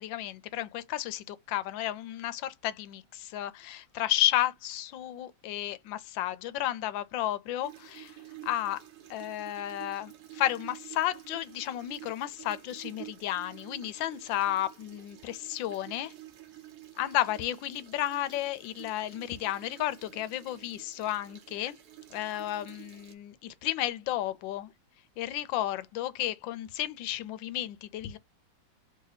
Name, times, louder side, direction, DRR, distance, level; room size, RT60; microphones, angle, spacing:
voice 1, 0.0-8.2 8.5-8.8 9.1-16.1 17.0-21.8 22.1-24.7 25.2-28.2, left 13 dB, 85° left, 1.3 m, -32 dB
sound 1, 7.6-23.1, right 14 dB, 65° right, 1.2 m, -50 dB
3.3 x 2.7 x 3.9 m
omnidirectional pair, 2.0 m